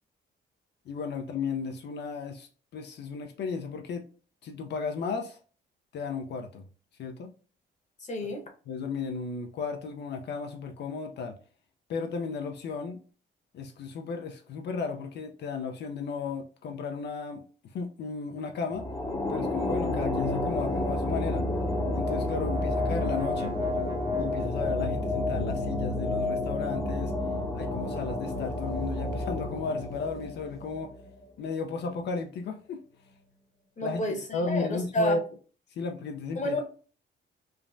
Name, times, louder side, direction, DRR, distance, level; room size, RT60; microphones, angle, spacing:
voice 1, 0.9-4.1 4.4-5.4 5.9-6.6 7.0-7.3 8.7-11.4 11.9-13.0 13.5-17.4 17.7-18.9 19.3-21.5 21.9-23.6 24.2-27.1 27.5-31.0 31.4-32.8 33.8-35.2 35.7-36.6, left 4 dB, 60° left, 0.5 m, -34 dB
voice 2, 8.1-8.4 33.8-35.2 36.4-36.6, left 1 dB, 35° left, 0.9 m, -30 dB
sound 1, 18.7-31.3, left 2 dB, 15° left, 0.7 m, -30 dB
Brass instrument, 20.8-25.1, right 5 dB, 20° right, 0.6 m, -46 dB
3.3 x 2.1 x 2.4 m
cardioid pair, 90°, 20 cm